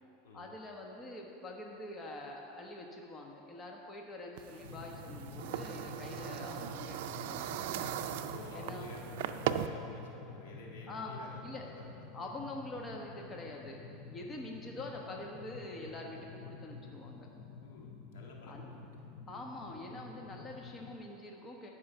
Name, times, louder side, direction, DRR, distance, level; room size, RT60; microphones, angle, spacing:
voice 1, 0.3-7.8 8.5-8.9 10.9-11.1 11.4-11.7 12.1-13.8 14.1-17.3 18.5-18.7 19.3-21.7, left 2 dB, 25° left, 0 dB, 1.2 m, -45 dB
sound 1, 4.4-9.7, right 11 dB, 70° right, 0.4 m, -38 dB
sound 2, 4.6-20.9, left 4 dB, 55° left, 0.8 m, -49 dB
voice 2, 8.3-12.2 17.6-18.8, left 2 dB, 80° left, -1 dB, 1.7 m, -51 dB
13.5 x 5.6 x 5.7 m, 2.9 s
supercardioid pair, 115°, 0 cm